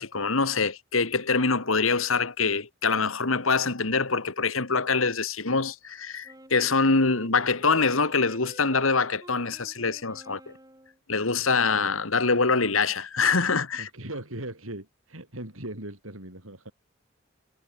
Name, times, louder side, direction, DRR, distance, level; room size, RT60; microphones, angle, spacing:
voice 1, 0.0-10.4 11.1-13.9, left 4 dB, 85° left, 2.2 m, -24 dB
Wind instrument woodwind instrument, 6.2-11.0, right 1 dB, 15° right, 7.0 m, -49 dB
voice 2, 13.8-16.7, right 1 dB, 85° right, 6.8 m, -39 dB
head